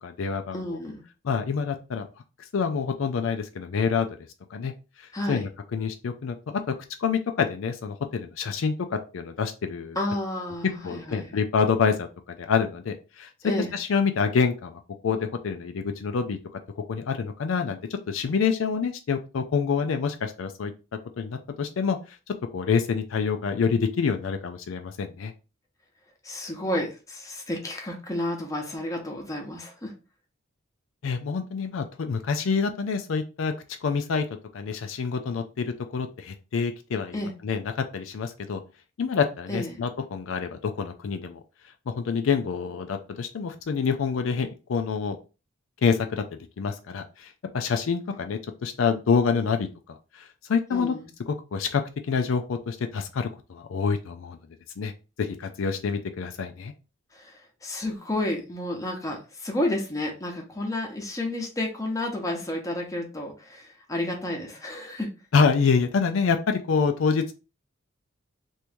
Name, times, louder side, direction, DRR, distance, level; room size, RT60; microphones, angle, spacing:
voice 1, 0.0-0.8 1.2-2.1 2.5-4.1 4.5-4.7 5.0-6.7 7.0-10.0 10.8-13.3 13.7-16.4 16.8-20.7 21.2-25.3 31.0-33.5 33.8-34.3 34.5-38.6 39.0-41.4 41.9-45.2 45.8-46.2 46.6-49.7 50.1-50.9 51.3-54.4 54.8-54.9 55.2-56.7 65.3-67.3, left 5 dB, 75° left, 6 dB, 0.4 m, -27 dB
voice 2, 0.5-1.0 5.1-5.4 10.0-11.3 13.4-13.7 26.2-29.9 37.1-37.3 39.5-39.8 50.7-51.0 57.1-65.1, left 1 dB, 15° left, 1 dB, 0.8 m, -31 dB
3.0 x 2.7 x 3.4 m, 0.31 s
head